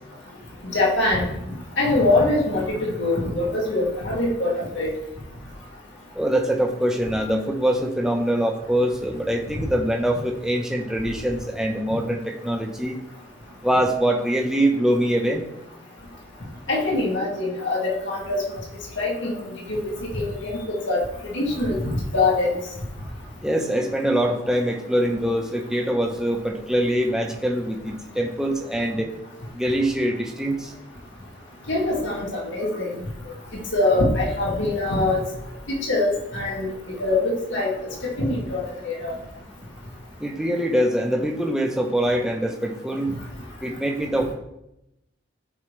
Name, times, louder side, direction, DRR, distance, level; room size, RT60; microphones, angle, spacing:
voice 1, 0.6-1.3 1.8-4.9 16.7-18.4 19.0-21.0 21.3-22.5 31.7-33.0 33.7-35.2 35.9-36.7 37.0-37.7 38.0-39.1, left 2 dB, 70° left, -3 dB, 2.1 m, -23 dB
voice 2, 6.1-13.0 13.6-15.4 23.4-29.1 29.5-30.7 40.2-43.1 43.6-44.3, right 1 dB, 5° right, 1 dB, 0.9 m, -23 dB
13.5 x 5.1 x 3.2 m, 0.86 s
head